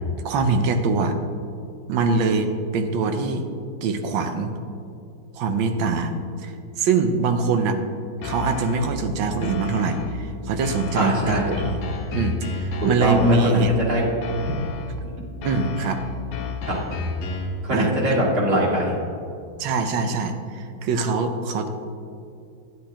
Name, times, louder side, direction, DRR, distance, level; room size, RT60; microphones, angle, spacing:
voice 1, 0.2-1.2 1.9-3.5 3.8-4.5 5.3-6.1 6.4-7.8 8.2-11.8 12.1-13.7 15.4-16.0 17.7-17.9 19.6-21.7, right 4 dB, 90° right, 7 dB, 1.5 m, -23 dB
sound 1, 8.2-9.0 9.4-10.2 10.6-13.8 14.2-15.0 15.4-17.6, left 3 dB, 85° left, 1.6 m, -31 dB
voice 2, 10.9-11.5 12.8-14.0 14.4-14.6 16.7-16.8 17.6-18.9, equal, 55° right, -6 dB, 2.6 m, -22 dB
11.0 x 9.9 x 2.9 m, 2.5 s
omnidirectional pair, 2.1 m